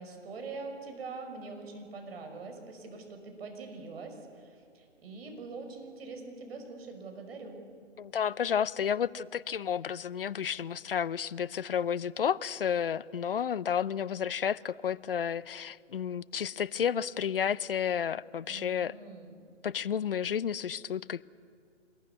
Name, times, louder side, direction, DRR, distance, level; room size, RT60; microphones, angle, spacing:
voice 1, 0.0-7.6 18.5-19.4, right 3 dB, 50° right, 5 dB, 5.6 m, -43 dB
voice 2, 8.0-19.0 19.6-21.2, left 8 dB, 50° left, 19 dB, 0.6 m, -31 dB
26.0 x 21.0 x 9.7 m, 2.2 s
figure-of-eight pair, 145°, 38 cm